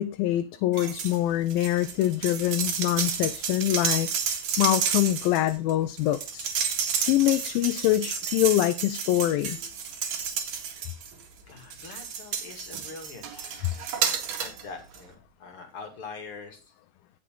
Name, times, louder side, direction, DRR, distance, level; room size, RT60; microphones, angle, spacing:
voice 1, 0.0-4.1 4.6-6.5 7.0-9.6, left 14 dB, 80° left, 2.4 m, -24 dB
sound 1, 0.7-1.2 1.5-11.2 11.7-14.6 14.9-15.0, right 7 dB, 65° right, 3.4 m, -31 dB
voice 2, 11.5-13.9 14.4-16.7, left 4 dB, 40° left, 2.8 m, -43 dB
17.0 x 6.4 x 3.7 m
omnidirectional pair, 4.2 m